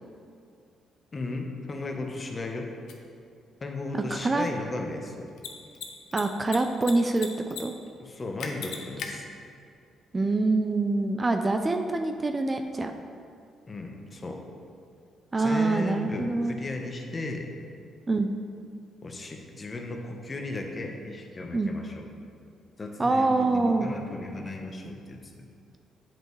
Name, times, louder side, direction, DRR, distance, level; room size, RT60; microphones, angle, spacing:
voice 1, 1.1-2.7 3.6-5.3 8.0-9.2 13.7-14.4 15.4-17.5 19.0-22.1 22.8-25.5, left 2 dB, 30° left, 2 dB, 0.9 m, -35 dB
Mechanisms, 2.9-3.0 5.3-5.5 5.7-5.9 6.1-6.9 7.2-7.6 7.9-8.0 8.4-9.1, left 8 dB, 80° left, 0.7 m, -35 dB
voice 2, 4.1-4.5 6.1-7.7 10.1-12.9 15.3-16.5 18.1-18.3 21.5-21.7 23.0-23.9, right 2 dB, 25° right, 6 dB, 0.4 m, -25 dB
8.7 x 5.5 x 3.1 m, 2.4 s
cardioid pair, 90°, 0 cm